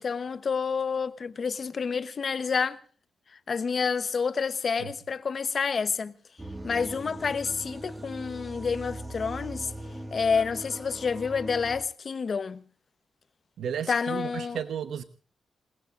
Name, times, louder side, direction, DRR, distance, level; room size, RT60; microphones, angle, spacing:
voice 1, 0.0-2.8 3.5-6.2 6.6-9.7 10.1-12.6 13.9-14.6, left 5 dB, 40° left, 1.0 m, -29 dB
sound 1, 6.4-11.8, right 1 dB, 15° right, 1.5 m, -40 dB
voice 2, 13.6-15.0, right 8 dB, 80° right, 1.0 m, -33 dB
28.5 x 19.5 x 2.5 m
wide cardioid pair, 160°, 0 cm